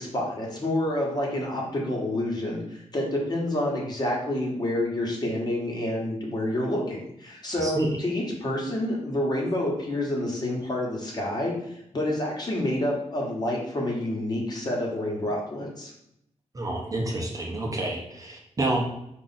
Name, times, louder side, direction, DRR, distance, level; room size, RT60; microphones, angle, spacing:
voice 1, 0.0-15.9, left 1 dB, 35° left, -2 dB, 1.1 m, -28 dB
voice 2, 7.6-7.9 16.5-18.9, right 1 dB, 30° right, 0 dB, 0.6 m, -28 dB
4.9 x 2.5 x 4.1 m, 0.79 s
wide cardioid pair, 170°, 12 cm